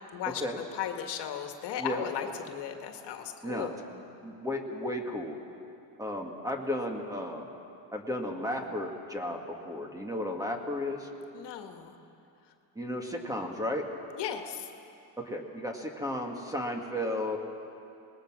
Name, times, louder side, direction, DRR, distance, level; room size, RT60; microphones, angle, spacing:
voice 1, 0.1-3.8 11.3-11.9 14.2-14.7, left 9 dB, 60° left, 5 dB, 1.9 m, -36 dB
voice 2, 3.4-5.4 6.0-7.5 7.9-11.1 12.8-13.9 15.2-17.4, left 1 dB, 5° right, 2 dB, 2.1 m, -34 dB
26.5 x 20.5 x 6.4 m, 2.7 s
cardioid pair, 130°, 46 cm